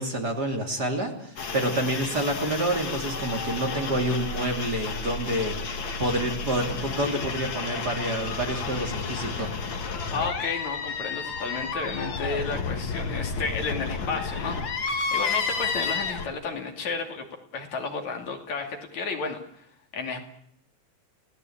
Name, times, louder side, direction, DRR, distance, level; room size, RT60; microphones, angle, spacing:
voice 1, 0.0-9.5, right 1 dB, 30° right, 3 dB, 3.3 m, -28 dB
sound 1, 1.4-16.3, left 4 dB, 45° left, 2.2 m, -31 dB
voice 2, 10.1-17.3 17.5-19.7 19.9-20.2, left 4 dB, 65° left, 4 dB, 3.9 m, -32 dB
28.5 x 17.5 x 8.7 m, 0.71 s
omnidirectional pair, 3.5 m